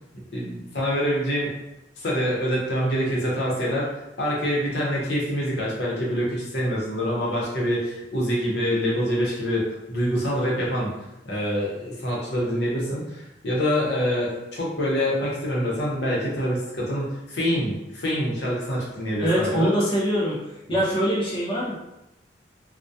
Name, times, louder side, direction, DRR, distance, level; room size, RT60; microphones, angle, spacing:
voice 1, 0.3-1.5 2.0-3.9 4.2-10.9 11.2-19.7, equal, 65° left, -5 dB, 0.7 m, -25 dB
voice 2, 19.2-20.4 20.7-21.7, equal, 30° left, -8 dB, 0.5 m, -23 dB
2.2 x 2.1 x 2.6 m, 0.91 s
head